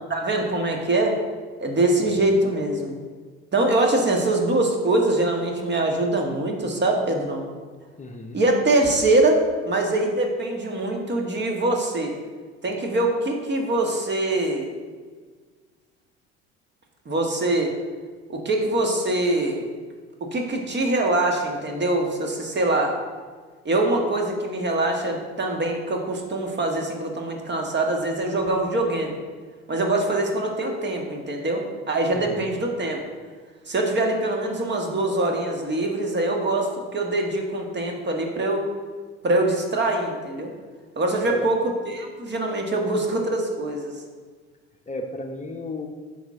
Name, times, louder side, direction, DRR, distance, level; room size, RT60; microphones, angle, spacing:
voice 1, 0.1-1.2 1.6-3.0 3.5-7.4 8.3-9.4 9.6-12.1 12.6-14.7 17.0-17.7 18.3-19.6 20.2-22.9 23.6-29.2 29.7-33.0 33.7-38.7 39.2-40.5 40.9-41.6 41.8-43.9, right 2 dB, 30° right, 2 dB, 1.6 m, -23 dB
voice 2, 8.0-8.4 32.1-32.5 41.3-41.5 44.9-45.9, left 2 dB, 20° left, 3 dB, 0.9 m, -34 dB
8.9 x 6.1 x 3.7 m, 1.5 s
hypercardioid pair, 65°, 34 cm